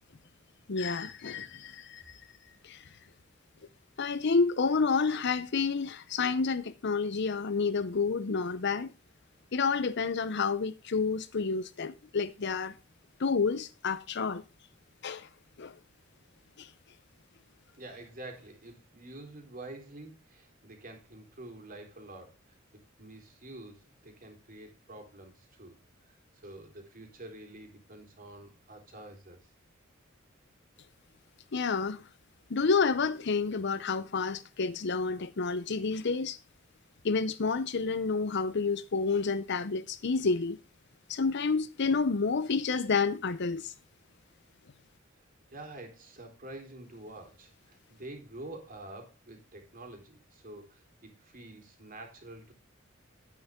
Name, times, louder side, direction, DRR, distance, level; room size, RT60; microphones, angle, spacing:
voice 1, 0.7-2.2 2.6-2.8 4.0-8.9 9.5-12.7 13.2-14.4 15.0-15.3 15.6-15.7 16.6-16.7 31.5-32.0 32.5-36.4 37.0-40.6 41.1-43.7, left 4 dB, 60° left, 0.7 m, -29 dB
voice 2, 17.8-22.4 23.0-25.7 26.1-29.4 45.5-52.5, right 2 dB, 45° right, 3.9 m, -47 dB
11.0 x 9.7 x 3.6 m
head